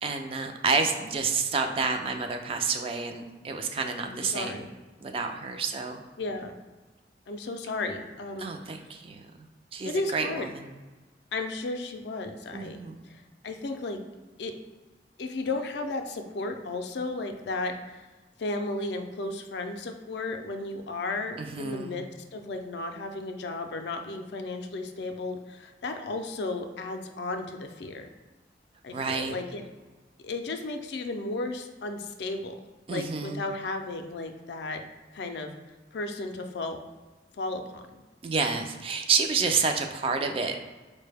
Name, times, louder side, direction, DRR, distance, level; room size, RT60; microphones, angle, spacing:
voice 1, 0.0-4.6 5.0-6.0 8.4-9.2 9.7-10.7 12.5-13.0 21.4-22.0 28.9-29.4 32.9-33.4 38.2-40.6, right 4 dB, 30° right, 4 dB, 0.3 m, -29 dB
voice 2, 4.0-4.7 6.2-6.5 7.3-8.9 9.8-10.5 11.3-12.8 13.0-14.0 14.4-14.5 15.2-18.1 18.4-22.0 22.3-28.1 28.8-29.6 30.2-32.6 32.9-34.8 35.1-35.5 35.9-36.8 37.4-37.8, left 2 dB, 75° left, 6 dB, 0.4 m, -34 dB
4.6 x 2.1 x 3.3 m, 1.2 s
head